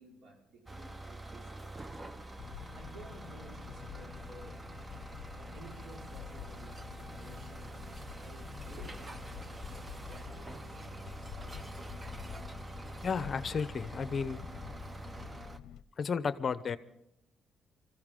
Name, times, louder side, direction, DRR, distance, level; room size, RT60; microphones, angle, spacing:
voice 1, 0.0-2.3 2.7-4.7 5.3-11.9, right 2 dB, 70° right, -1 dB, 5.2 m, -55 dB
sound 1, 0.7-15.6, right 2 dB, 20° right, 0.8 m, -46 dB
sound 2, 2.4-15.8, left 10 dB, 75° left, 0.6 m, -48 dB
voice 2, 13.0-14.4 16.0-16.8, left 5 dB, 45° left, 13 dB, 0.8 m, -33 dB
25.5 x 14.5 x 3.8 m, 0.81 s
cardioid pair, 90°, 0 cm